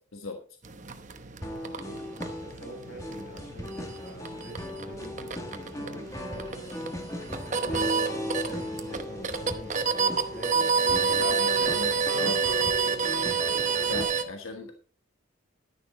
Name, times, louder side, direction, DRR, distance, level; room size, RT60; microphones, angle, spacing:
sound 1, 0.6-14.2, right 5 dB, 35° right, 1.0 m, -29 dB
sound 2, 1.4-14.0, left 1 dB, 15° left, 1.9 m, -37 dB
voice 1, 1.8-2.1 2.4-6.6 7.3-9.7 10.1-13.1, right 1 dB, 45° left, 0 dB, 6.2 m, -45 dB
voice 2, 11.2-12.4 13.8-14.8, left 2 dB, 90° left, 4 dB, 1.4 m, -36 dB
11.5 x 10.5 x 3.8 m, 0.40 s
head